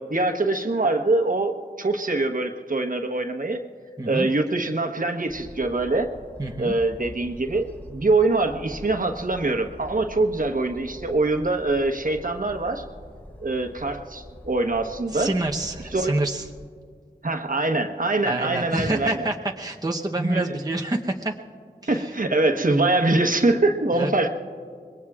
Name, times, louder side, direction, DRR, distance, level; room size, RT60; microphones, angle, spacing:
voice 1, 0.1-3.6 4.1-6.1 6.6-12.8 13.4-15.3 15.9-16.1 17.2-19.1 20.2-20.6 21.9-24.3, right 2 dB, 55° right, 4 dB, 1.2 m, -23 dB
sound 1, 5.3-16.7, equal, 10° left, 2.4 m, -44 dB
voice 2, 6.4-6.7 15.1-16.5 18.3-21.4 21.9-22.2 23.9-24.1, right 2 dB, 25° right, 1 dB, 0.9 m, -27 dB
26.0 x 21.5 x 2.4 m, 2.1 s
wide cardioid pair, 45°, 17 cm